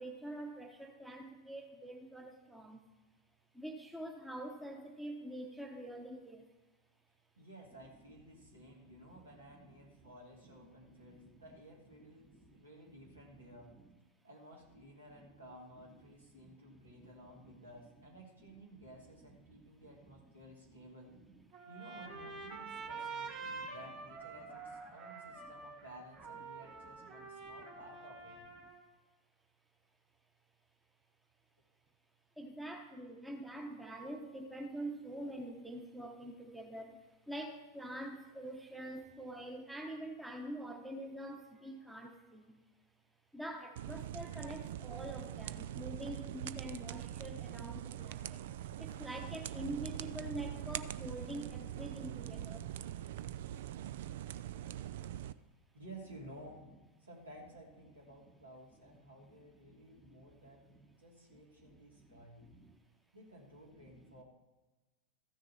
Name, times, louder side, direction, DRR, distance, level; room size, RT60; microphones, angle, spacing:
voice 1, 0.0-2.8 3.5-6.5 8.6-9.0 9.5-9.6 10.9-11.0 12.3-12.6 13.0-13.1 13.7-13.9 15.2-15.3 16.4-16.8 17.4-17.6 19.6-19.7 23.5-23.6 25.4-25.5 32.4-42.6 43.3-48.4 48.8-52.7 59.6-60.3 61.7-62.7 63.9-64.0, right 1 dB, 5° right, 2 dB, 1.1 m, -46 dB
voice 2, 7.4-13.7 14.2-21.1 21.7-28.4 55.7-56.6 57.0-62.5 63.1-64.2, right 1 dB, 75° right, -3 dB, 3.0 m, -55 dB
Trumpet, 21.5-28.9, right 4 dB, 35° right, 2.3 m, -47 dB
sound 1, 43.8-55.3, right 12 dB, 55° right, 0.4 m, -43 dB
14.5 x 6.4 x 4.3 m, 1.1 s
figure-of-eight pair, 90°, 0 cm